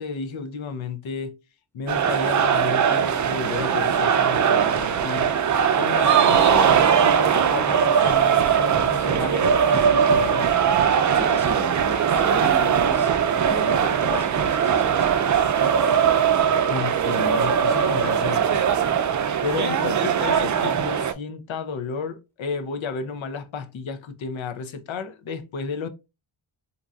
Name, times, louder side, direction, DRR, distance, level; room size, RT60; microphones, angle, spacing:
voice 1, 0.0-1.3 1.7-5.3 5.7-10.5 16.7-18.6 19.4-25.9, left 5 dB, 70° left, 0.7 m, -32 dB
sound 1, 1.9-21.1, right 7 dB, 40° right, 0.4 m, -20 dB
voice 2, 11.1-13.1 13.4-15.3, right 1 dB, 5° left, 0.9 m, -34 dB
3.8 x 2.7 x 2.3 m
cardioid pair, 75°, 49 cm